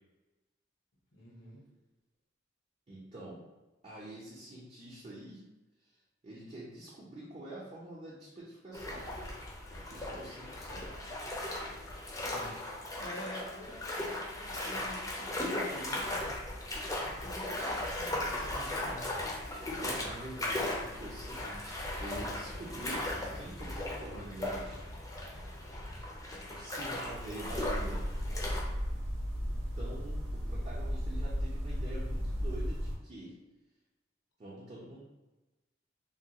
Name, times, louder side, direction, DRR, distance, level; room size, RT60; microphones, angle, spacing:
voice 1, 1.1-1.6 12.2-12.6 13.0-16.3 17.0-19.1, left 1 dB, 90° left, -3 dB, 1.1 m, -48 dB
voice 2, 2.9-3.4 3.8-5.4 5.8-6.0 6.2-9.1 9.9-11.0 19.8-24.8 26.5-28.0 29.5-33.3 34.4-35.0, right 1 dB, 35° right, -7 dB, 0.6 m, -46 dB
sound 1, 8.7-28.6, left 1 dB, 20° left, 0.5 m, -37 dB
sound 2, 27.4-33.0, equal, 85° right, 0.7 m, -35 dB
3.4 x 2.2 x 2.8 m, 1.1 s
head